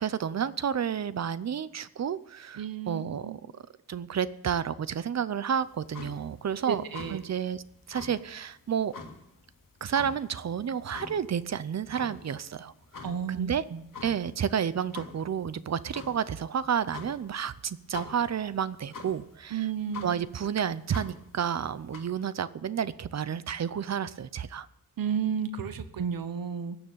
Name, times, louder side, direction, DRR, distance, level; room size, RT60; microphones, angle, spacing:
voice 1, 0.0-3.6 3.9-6.8 7.1-7.6 7.9-8.9 9.8-13.6 14.0-19.6 20.0-24.7, right 8 dB, 50° right, 16 dB, 0.6 m, -31 dB
voice 2, 2.6-3.4 6.7-7.2 13.0-13.8 19.5-20.1 25.0-26.8, right 7 dB, 75° right, 11 dB, 1.1 m, -32 dB
sound 1, 5.6-22.0, left 4 dB, 70° left, 2.5 m, -46 dB
17.5 x 7.1 x 9.2 m, 0.84 s
wide cardioid pair, 170°, 35 cm